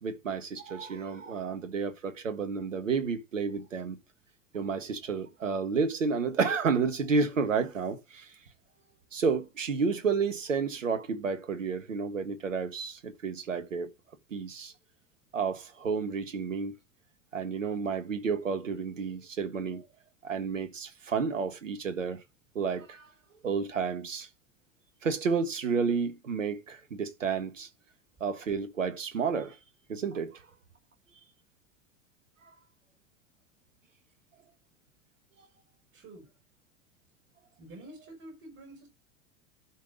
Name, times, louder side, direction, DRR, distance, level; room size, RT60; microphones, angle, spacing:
voice 1, 0.0-4.0 4.5-8.3 9.1-13.9 14.3-14.7 15.3-16.7 17.3-19.8 20.2-22.2 22.5-23.1 23.4-24.3 25.0-27.7 28.2-29.6 29.9-30.4 32.4-32.5, right 5 dB, 85° right, 1.5 m, -31 dB
voice 2, 35.9-36.3 37.6-38.9, right 1 dB, 35° right, 5.5 m, -48 dB
12.0 x 5.8 x 4.9 m
hypercardioid pair, 85°, 37 cm